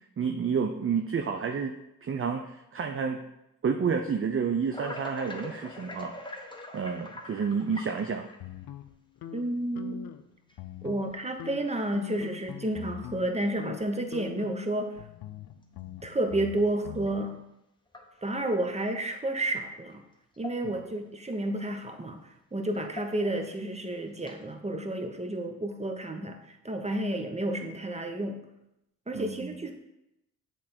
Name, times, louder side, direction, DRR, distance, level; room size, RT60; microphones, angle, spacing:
voice 1, 0.2-1.7 2.0-3.2 3.6-6.5 6.7-8.3 20.6-20.8 29.1-29.5, right 6 dB, 35° right, 4 dB, 0.6 m, -30 dB
sound 1, 4.7-8.6 9.4-9.5 10.5-10.6 11.3-11.6 12.1-12.2 12.6-12.8 14.2-14.3 17.0-17.1 17.9-18.5 19.9-20.0 20.3-21.0 21.3-21.4 22.7-23.5 24.2-24.5, left 2 dB, 15° left, 1.0 m, -43 dB
sound 2, 8.4-10.3 10.5-11.1 11.4-13.3 13.6-13.8 14.1-17.1, left 10 dB, 85° left, 0.5 m, -43 dB
voice 2, 9.3-10.0 10.8-15.0 16.0-17.3 18.2-20.0 20.4-22.2 22.5-28.4 29.1-29.7, right 1 dB, 20° right, 5 dB, 1.0 m, -31 dB
7.6 x 3.6 x 4.4 m, 0.86 s
cardioid pair, 55°, 36 cm